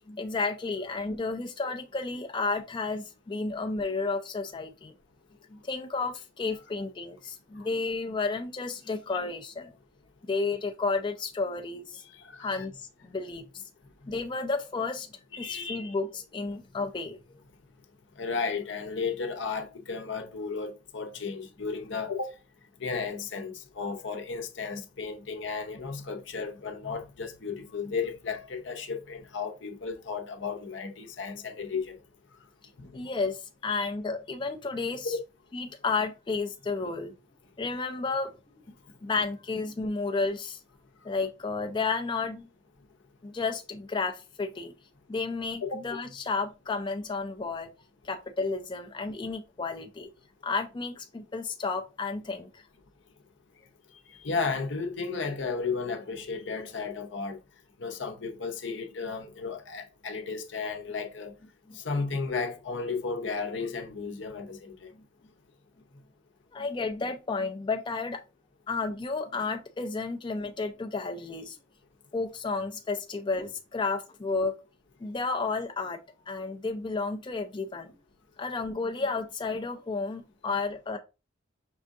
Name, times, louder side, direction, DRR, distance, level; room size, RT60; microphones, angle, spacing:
voice 1, 0.1-4.9 5.5-9.7 10.2-12.0 12.4-13.4 14.0-15.1 15.4-17.2 32.9-35.2 35.5-37.1 37.6-38.3 39.0-40.6 41.0-42.4 43.2-44.7 45.1-47.7 48.0-50.1 50.4-52.6 61.7-61.8 66.5-68.2 68.7-71.6 72.1-74.6 75.0-76.0 76.3-77.9 78.4-81.0, left 4 dB, 25° left, 0.4 m, -32 dB
voice 2, 12.3-12.7 15.3-15.9 18.2-22.3 22.8-32.0 32.8-33.0 33.7-33.9 35.0-35.2 45.6-45.8 54.2-57.4 57.8-61.3 61.7-64.9, left 4 dB, 65° left, 0.7 m, -34 dB
5.4 x 3.5 x 2.6 m
head